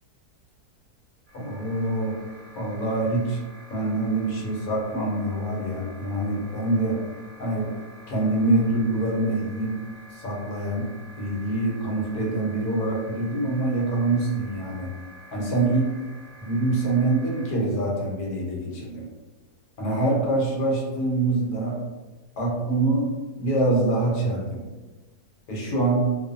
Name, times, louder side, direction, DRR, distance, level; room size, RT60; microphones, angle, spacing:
voice 1, 1.3-2.2 2.5-3.4 3.7-7.0 7.4-7.7 8.1-9.8 10.1-10.9 11.2-14.9 15.3-15.9 16.4-19.0 19.8-21.8 22.4-24.6 25.5-26.2, right 2 dB, 70° left, -2 dB, 1.2 m, -25 dB
sound 1, 1.3-17.5, right 2 dB, 45° right, 0.7 m, -48 dB
2.6 x 2.5 x 2.5 m, 1.2 s
omnidirectional pair, 1.8 m